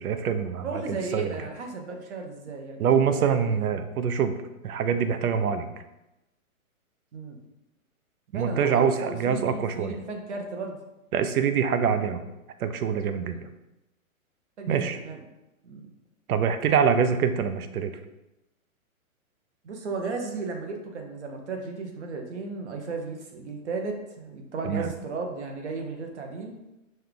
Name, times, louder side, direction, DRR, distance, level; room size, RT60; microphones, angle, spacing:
voice 1, 0.0-1.4 2.8-4.3 4.6-5.7 8.3-10.0 11.1-12.2 12.6-13.5 14.7-15.0 16.3-17.9 24.6-24.9, right 7 dB, 85° right, 9 dB, 0.6 m, -25 dB
voice 2, 0.6-3.6 7.1-7.4 8.3-10.8 13.2-13.4 14.6-15.2 15.6-15.9 19.6-26.6, right 3 dB, 50° right, 3 dB, 0.8 m, -35 dB
5.3 x 2.3 x 3.8 m, 0.96 s
hypercardioid pair, 175°, 43 cm